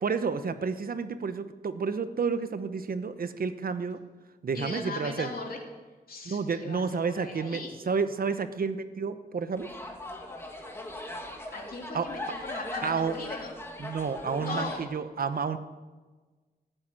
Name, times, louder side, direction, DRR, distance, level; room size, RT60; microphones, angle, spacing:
voice 1, 0.0-4.0 4.4-5.3 6.2-7.6 7.9-9.7 11.9-12.1 12.8-13.1 13.8-15.6, right 5 dB, 60° right, 11 dB, 0.9 m, -30 dB
voice 2, 4.5-5.6 6.1-7.7 11.5-13.5 14.4-14.8, left 3 dB, 65° left, 0 dB, 3.2 m, -38 dB
sound 1, 9.6-14.8, left 1 dB, 15° left, 2.2 m, -39 dB
14.5 x 8.9 x 9.0 m, 1.3 s
wide cardioid pair, 115°, 17 cm